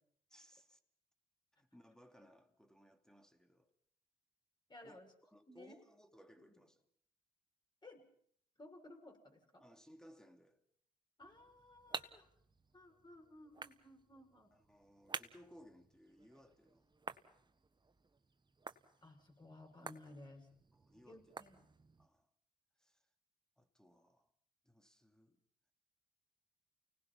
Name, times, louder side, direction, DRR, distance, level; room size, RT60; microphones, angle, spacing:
voice 1, 0.3-0.8 1.6-3.7 4.8-6.8 9.6-10.6 14.5-16.9 20.7-21.3 22.0-22.3 22.8-23.0 23.6-24.3 24.6-25.4, equal, 5° left, 2.8 m, -63 dB
voice 2, 4.7-5.1 5.5-5.8 6.4-6.5 7.8-8.0 8.6-9.6 11.2-12.3 12.7-14.5 19.0-20.5 21.1-21.6, left 1 dB, 25° left, 6.7 m, -57 dB
sound 1, 11.2-22.1, right 4 dB, 25° right, 1.6 m, -52 dB
29.5 x 19.0 x 5.8 m
hypercardioid pair, 55°, 18 cm